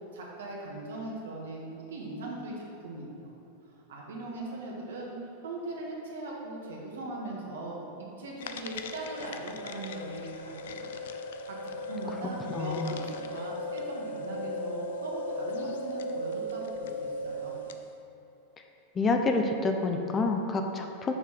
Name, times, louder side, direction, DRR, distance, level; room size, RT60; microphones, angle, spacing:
voice 1, 0.1-3.3 3.9-5.1 5.4-10.9 11.5-17.5, right 2 dB, 80° right, -3 dB, 1.8 m, -40 dB
sound 1, 8.4-17.9, left 1 dB, 75° left, 0.5 m, -37 dB
voice 2, 12.5-12.9 19.0-21.1, left 3 dB, 25° left, 4 dB, 0.7 m, -28 dB
6.5 x 4.8 x 5.9 m, 2.9 s
hypercardioid pair, 110°, 0 cm